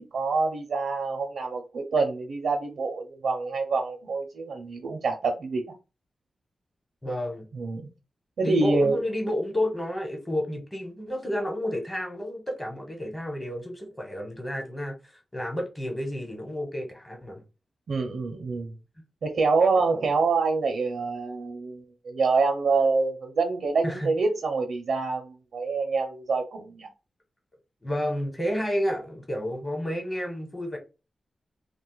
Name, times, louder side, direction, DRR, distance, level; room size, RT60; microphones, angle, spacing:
voice 1, 0.0-5.7 7.6-7.9 8.4-9.0 17.9-18.7 19.2-26.9, right 4 dB, 80° right, 0.6 m, -26 dB
voice 2, 7.0-7.5 8.4-17.4 19.9-20.0 23.8-24.1 27.8-30.8, equal, 15° left, 1.1 m, -31 dB
2.5 x 2.3 x 3.9 m
wide cardioid pair, 85°, 0 cm